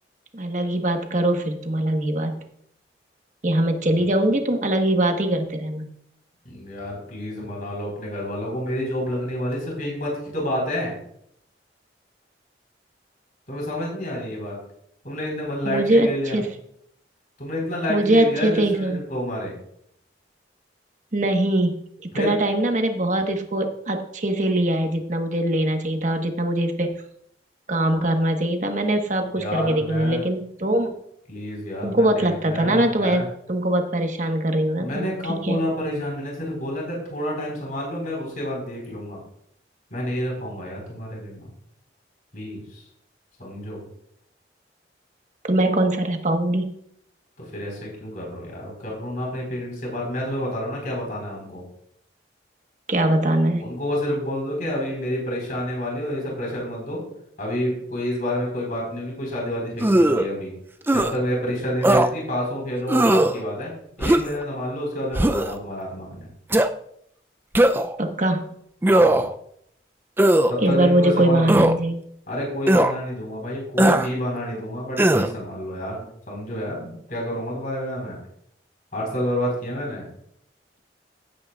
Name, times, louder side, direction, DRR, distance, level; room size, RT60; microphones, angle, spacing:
voice 1, 0.3-2.4 3.4-5.9 15.6-16.1 16.3-16.5 17.9-19.0 21.1-21.7 22.1-26.9 27.7-30.9 31.8-35.6 45.5-46.7 52.9-53.7 68.0-68.5 70.6-72.0, right 1 dB, 40° right, 4 dB, 1.3 m, -22 dB
voice 2, 6.4-10.9 13.5-14.6 15.0-16.4 17.4-19.5 22.1-22.4 29.3-30.2 31.3-33.3 34.8-39.2 39.9-41.5 42.3-42.8 43.4-43.8 47.4-51.6 53.6-57.0 57.4-60.5 60.9-63.7 64.0-66.3 69.1-69.2 70.5-71.6 72.3-78.2 78.9-80.1, equal, 50° left, -2 dB, 4.4 m, -29 dB
sound 1, 59.8-60.3 60.9-61.1 61.8-62.1 62.9-63.3 64.0-64.4 65.1-65.5 66.5-66.7 67.5-67.9 68.8-69.3 70.2-70.5 71.5-71.8 72.7-72.9 73.8-74.1 75.0-75.3, right 1 dB, 10° right, 0.4 m, -18 dB
16.5 x 8.7 x 2.4 m, 0.71 s
head